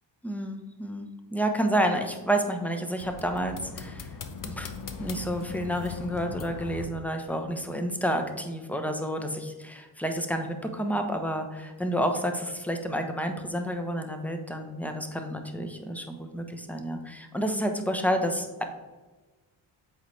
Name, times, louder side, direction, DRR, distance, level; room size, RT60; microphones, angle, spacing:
voice 1, 0.2-4.1 4.4-4.7 5.0-18.6, equal, 5° left, 5 dB, 0.9 m, -30 dB
sound 1, 3.0-6.9, left 5 dB, 40° left, 0.8 m, -39 dB
7.9 x 4.2 x 3.3 m, 1.2 s
cardioid pair, 65°, 49 cm